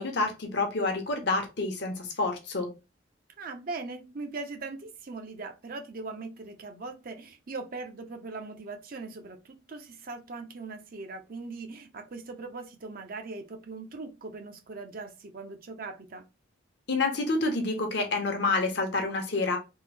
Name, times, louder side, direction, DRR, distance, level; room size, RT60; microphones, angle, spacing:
voice 1, 0.0-2.7 16.9-19.6, left 3 dB, 60° left, 0.8 m, -28 dB
voice 2, 3.4-16.2, right 3 dB, 50° right, 0.6 m, -40 dB
3.5 x 2.0 x 3.3 m
head